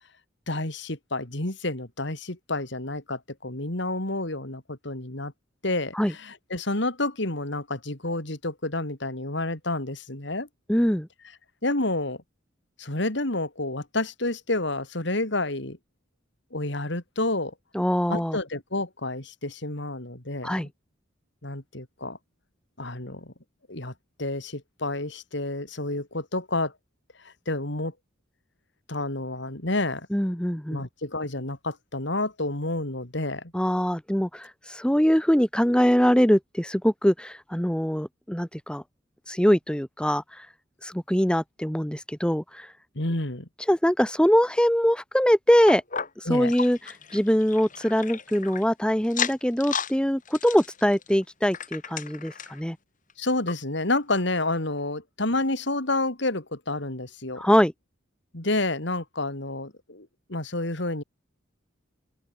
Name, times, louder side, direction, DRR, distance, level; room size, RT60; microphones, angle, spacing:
voice 1, 0.5-5.3 5.6-10.5 11.6-12.2 12.8-15.8 16.5-17.5 18.1-20.6 21.4-22.2 22.8-23.3 23.7-23.9 24.2-26.7 27.2-27.9 28.9-30.1 30.7-33.5 43.0-43.5 46.3-46.5 53.2-57.4 58.3-61.0, left 2 dB, 65° left, 3.5 m, -29 dB
voice 2, 10.7-11.1 17.7-18.4 20.4-20.7 30.1-30.8 33.5-38.8 39.3-40.5 40.8-42.7 43.7-45.8 46.2-52.8 57.4-57.7, equal, 5° left, 1.6 m, -23 dB
sound 1, 45.7-48.7 49.0-49.9 50.3-52.6 53.1-53.2 53.5-53.6 54.2-54.3, left 7 dB, 40° left, 7.2 m, -34 dB
open air
head